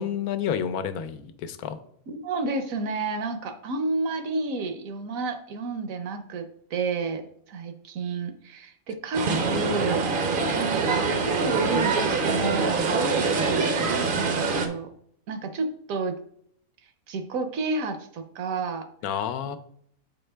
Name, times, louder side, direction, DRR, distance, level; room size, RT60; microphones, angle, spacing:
voice 1, 0.0-1.8 19.0-19.6, left 8 dB, 80° left, 10 dB, 1.1 m, -29 dB
voice 2, 2.1-6.5 6.7-10.1 10.6-13.1 13.5-14.9 15.3-16.2 17.1-18.9, right 3 dB, 70° right, 9 dB, 1.1 m, -30 dB
sound 1, 9.1-14.7, right 4 dB, 55° right, 0.6 m, -24 dB
8.0 x 4.4 x 3.3 m, 0.66 s
omnidirectional pair, 1.5 m